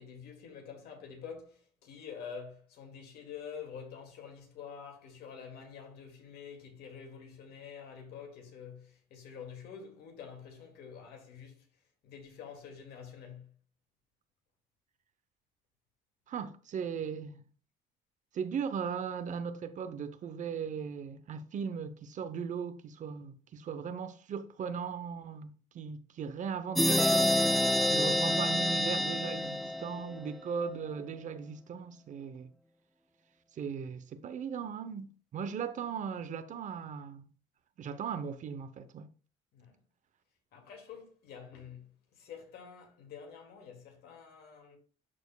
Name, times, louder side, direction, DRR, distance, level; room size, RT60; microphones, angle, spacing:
voice 1, 0.0-11.7 12.0-13.5 39.5-39.8 40.5-44.8, left 7 dB, 75° left, 2.1 m, -47 dB
voice 2, 16.3-17.4 18.3-32.5 33.5-37.3 37.8-39.1, right 6 dB, 50° right, 0.7 m, -38 dB
sound 1, 26.8-30.3, left 1 dB, ahead, 0.3 m, -27 dB
12.0 x 4.3 x 2.2 m
cardioid pair, 110°, 17 cm